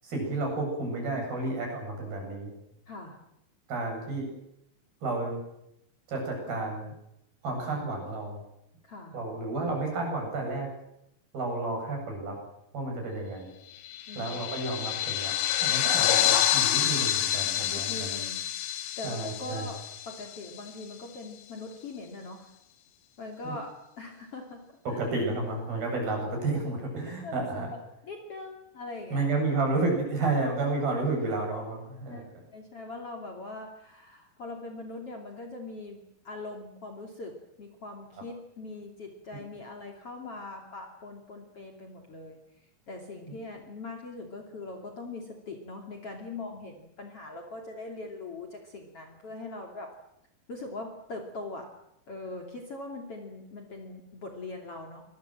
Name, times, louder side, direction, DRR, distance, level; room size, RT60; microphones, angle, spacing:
voice 1, 0.0-2.5 3.7-4.3 5.0-5.4 6.1-6.9 7.4-8.4 9.1-10.7 11.3-12.4 12.7-13.5 14.2-15.3 15.6-18.2 19.0-19.7 23.4-23.5 24.9-27.7 29.1-32.2, right 3 dB, 90° right, 2 dB, 9.9 m, -31 dB
voice 2, 2.9-3.2 8.8-9.2 14.1-14.3 17.7-18.4 19.0-19.8 20.1-22.5 23.2-23.7 24.0-25.0 27.2-27.8 28.0-29.3 32.1-36.0 36.2-42.4 42.9-49.9 50.5-51.7 52.1-55.0, left 2 dB, 40° left, 2 dB, 3.6 m, -41 dB
sound 1, 13.8-20.7, left 11 dB, 85° left, 3.3 m, -28 dB
25.5 x 21.5 x 7.7 m, 0.82 s
omnidirectional pair, 4.1 m